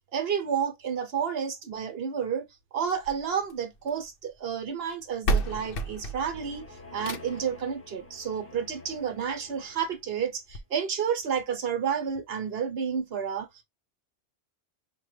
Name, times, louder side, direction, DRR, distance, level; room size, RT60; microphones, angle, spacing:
voice 1, 0.1-2.5 2.7-6.6 6.9-13.5, right 7 dB, 65° right, 1.1 m, -30 dB
sound 1, 2.9-4.1 4.9-5.0 5.2-7.5 8.9-9.0 9.5-9.6 9.8-9.9 10.5-10.6, right 2 dB, 60° left, 0.8 m, -31 dB
sound 2, 5.7-10.3, left 2 dB, 15° left, 0.5 m, -49 dB
5.0 x 2.3 x 3.1 m
omnidirectional pair, 1.2 m